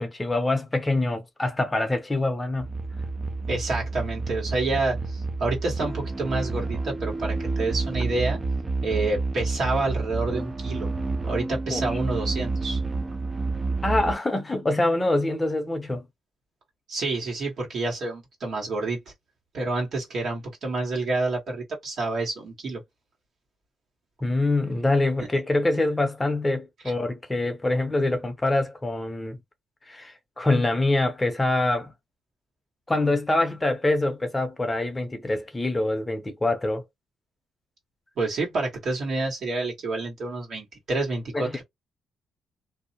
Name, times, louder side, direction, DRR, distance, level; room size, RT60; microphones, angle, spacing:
voice 1, 0.0-2.7 11.7-12.0 13.8-16.1 24.2-29.4 29.9-31.9 32.9-36.8 41.3-41.6, left 2 dB, 20° left, 0.6 m, -25 dB
sound 1, 2.6-14.1, right 3 dB, 25° right, 0.4 m, -29 dB
voice 2, 3.5-8.4 8.8-10.9 11.2-12.8 16.9-19.0 19.5-22.8 38.2-41.6, right 3 dB, 60° right, 1.5 m, -28 dB
2.6 x 2.0 x 2.8 m
cardioid pair, 90°, 0 cm